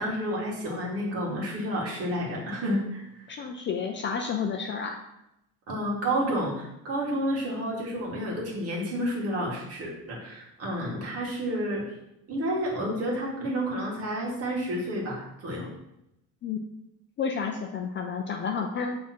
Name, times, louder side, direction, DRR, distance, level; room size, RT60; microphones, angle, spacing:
voice 1, 0.0-3.0 5.7-11.8 12.3-15.7, equal, 40° right, -3 dB, 2.0 m, -30 dB
voice 2, 3.3-5.0 16.4-16.6 17.2-19.0, left 6 dB, 30° left, 4 dB, 0.4 m, -30 dB
7.5 x 3.7 x 4.3 m, 0.85 s
cardioid pair, 160°, 38 cm